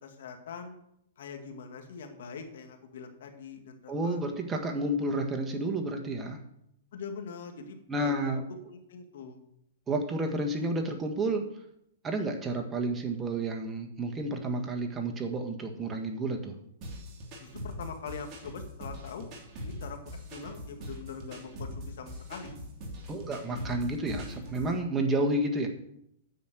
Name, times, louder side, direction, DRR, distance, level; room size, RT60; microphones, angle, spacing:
voice 1, 0.0-0.8 1.2-4.2 6.9-9.4 17.4-19.3 19.6-22.5 23.4-23.6, left 5 dB, 70° left, 5 dB, 2.0 m, -43 dB
voice 2, 3.9-6.4 7.9-8.4 9.9-11.4 12.0-16.5 23.1-25.7, right 2 dB, 15° right, 3 dB, 1.5 m, -30 dB
sound 1, 16.8-24.8, left 1 dB, 30° right, 2.9 m, -42 dB
9.5 x 6.4 x 7.7 m, 0.76 s
hypercardioid pair, 145°, 0 cm